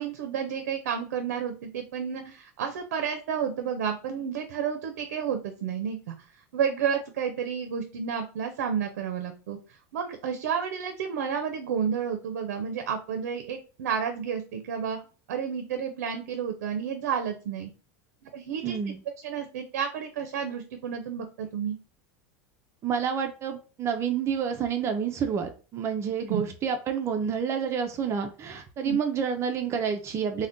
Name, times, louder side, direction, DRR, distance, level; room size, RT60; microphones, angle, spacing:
voice 1, 0.0-6.1 6.5-9.6 9.9-15.0 15.3-17.7 18.3-18.9 19.2-21.8 26.3-26.4 28.8-29.0, right 7 dB, 90° right, 6 dB, 0.5 m, -31 dB
voice 2, 18.6-19.0 22.8-30.5, right 7 dB, 35° right, 5 dB, 0.4 m, -29 dB
2.5 x 2.1 x 3.5 m, 0.35 s
supercardioid pair, 130°, 9 cm